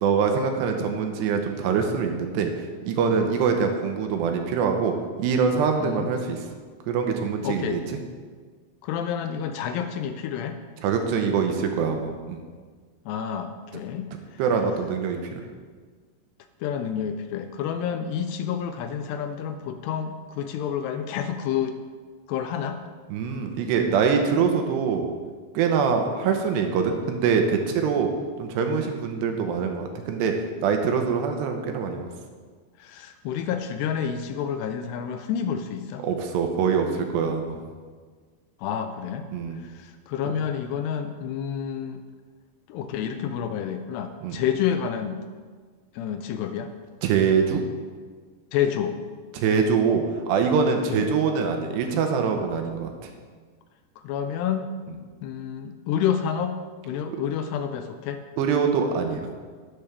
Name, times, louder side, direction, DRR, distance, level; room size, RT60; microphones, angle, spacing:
voice 1, 0.0-2.5 2.9-6.4 6.9-8.0 10.8-12.4 14.4-15.2 23.1-25.1 25.5-28.1 28.4-30.3 30.6-32.1 36.0-37.6 39.3-39.6 40.3-40.4 44.2-44.4 47.0-47.6 49.3-52.9 58.4-59.3, right 6 dB, 80° right, 4 dB, 2.9 m, -24 dB
voice 2, 7.4-7.8 8.8-10.6 13.1-14.1 16.6-21.8 22.3-22.8 32.8-36.0 38.6-39.3 39.6-42.0 42.7-45.2 45.9-46.7 48.5-49.0 50.9-51.1 54.0-54.7 55.2-56.6 56.9-58.2, left 8 dB, 85° left, 8 dB, 2.5 m, -29 dB
12.5 x 10.5 x 3.4 m, 1.5 s
omnidirectional pair, 5.1 m